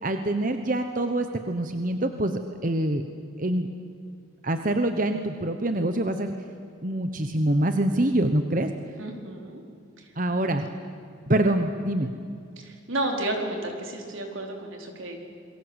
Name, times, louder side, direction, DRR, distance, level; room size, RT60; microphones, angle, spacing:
voice 1, 0.0-3.0 3.4-3.7 4.4-6.3 6.8-8.7 10.2-10.7 11.3-12.1, right 1 dB, 40° right, 7 dB, 1.1 m, -25 dB
voice 2, 9.0-9.6 10.0-10.5 10.8-10.9 12.6-15.2, right 1 dB, 80° right, 2 dB, 4.6 m, -32 dB
28.0 x 22.5 x 8.2 m, 2.4 s
head